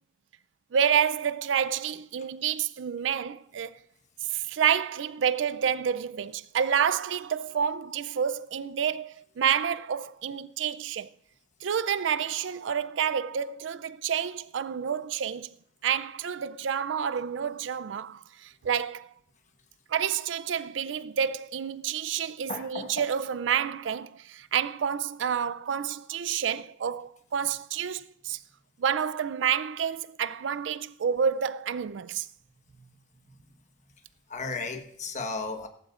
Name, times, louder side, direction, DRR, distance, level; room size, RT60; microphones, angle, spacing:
voice 1, 0.7-3.8 4.3-11.1 11.6-15.5 15.8-19.1 19.9-28.4 28.8-32.3, right 8 dB, 90° right, 0.4 m, -29 dB
voice 2, 22.5-23.1 32.6-33.5 34.3-35.7, left 3 dB, 40° left, 1.3 m, -36 dB
16.5 x 15.0 x 2.5 m
head